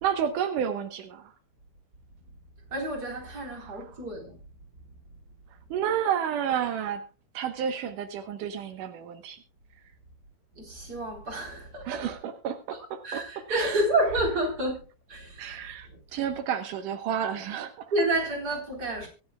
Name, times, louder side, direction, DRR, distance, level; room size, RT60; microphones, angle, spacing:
voice 1, 0.0-1.3 3.6-3.8 5.7-7.0 7.3-9.4 11.9-13.2 13.5-13.8 15.4-17.9, right 8 dB, 80° right, 2.7 m, -31 dB
voice 2, 2.7-4.4 10.5-12.1 13.0-14.8 15.1-15.6 15.9-16.0 17.9-19.1, right 1 dB, 30° right, 4.3 m, -29 dB
24.0 x 9.5 x 2.3 m
omnidirectional pair, 3.6 m